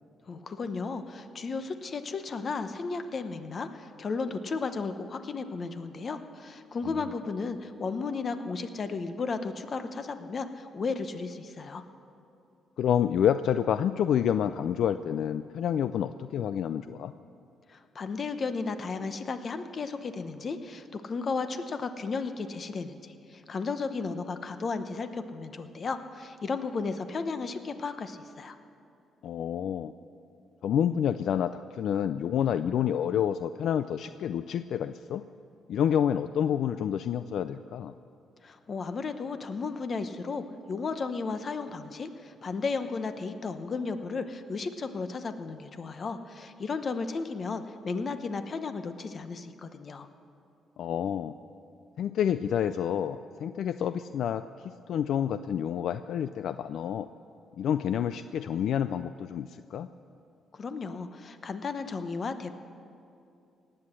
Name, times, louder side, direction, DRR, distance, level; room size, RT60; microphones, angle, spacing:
voice 1, 0.3-11.8 17.7-28.6 38.4-50.1 60.5-62.5, left 4 dB, 45° left, 9 dB, 0.9 m, -34 dB
voice 2, 12.8-17.1 29.2-29.9 30.6-35.2 35.7-37.9 50.8-51.3 52.0-57.1 57.6-59.9, left 9 dB, 70° left, 12 dB, 0.3 m, -28 dB
18.0 x 7.9 x 7.5 m, 2.6 s
cardioid pair, 90°, 0 cm